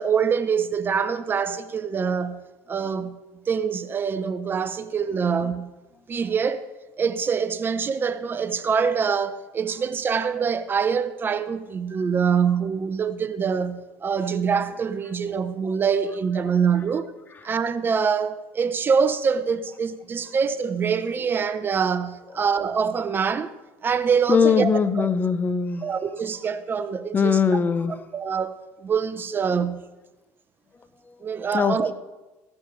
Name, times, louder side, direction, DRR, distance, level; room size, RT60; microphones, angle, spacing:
voice 1, 0.0-2.4 2.7-3.1 3.5-5.7 6.1-6.7 7.0-17.1 17.4-23.5 23.8-24.7 25.0-25.1 25.8-27.4 28.1-29.8 31.2-31.9, right 6 dB, 30° right, 0.7 m, -24 dB
voice 2, 24.3-25.9 27.1-27.9 31.5-31.9, left 6 dB, 30° left, 0.8 m, -21 dB
16.0 x 10.5 x 3.3 m
supercardioid pair, 95°, 7 cm